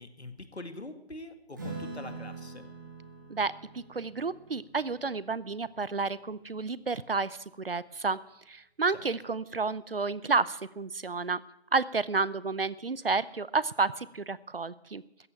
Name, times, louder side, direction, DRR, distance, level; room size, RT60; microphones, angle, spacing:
voice 1, 0.0-2.7 8.9-9.1, left 2 dB, 80° left, 8 dB, 2.2 m, -44 dB
Acoustic guitar / Strum, 1.5-6.4, right 3 dB, 20° right, 1.9 m, -44 dB
voice 2, 3.3-8.2 8.5-11.4 11.7-15.0, right 4 dB, 60° right, 18 dB, 0.7 m, -31 dB
14.5 x 8.8 x 8.9 m, 0.84 s
figure-of-eight pair, 170°, 32 cm